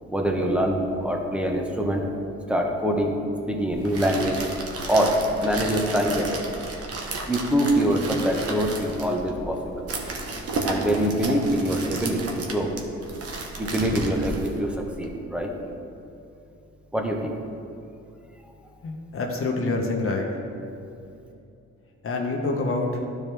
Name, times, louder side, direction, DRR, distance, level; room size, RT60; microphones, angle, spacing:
voice 1, 0.1-2.1 2.5-3.2 3.5-4.4 4.9-6.4 7.3-9.9 10.6-12.7 13.6-15.5 16.9-17.3 18.4-18.5, equal, 5° right, 1 dB, 1.1 m, -24 dB
sound 1, 3.7-15.1, right 3 dB, 50° right, 1.2 m, -33 dB
voice 2, 18.8-20.3 22.0-23.0, left 3 dB, 45° left, 1 dB, 1.1 m, -26 dB
12.5 x 4.6 x 3.4 m, 2.7 s
cardioid pair, 90°, 30 cm